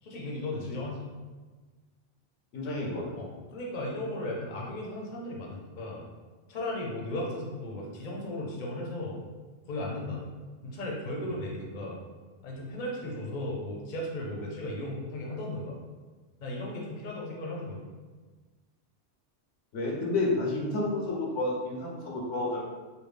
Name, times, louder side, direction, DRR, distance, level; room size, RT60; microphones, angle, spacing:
voice 1, 0.0-1.0 3.1-6.0 6.5-9.2 9.7-10.2 10.6-12.0 12.4-15.8 16.4-17.8, left 1 dB, 50° left, -2 dB, 0.7 m, -36 dB
voice 2, 2.5-3.1 19.7-22.7, left 2 dB, 90° left, -2 dB, 1.1 m, -30 dB
3.4 x 2.3 x 3.3 m, 1.3 s
omnidirectional pair, 1.2 m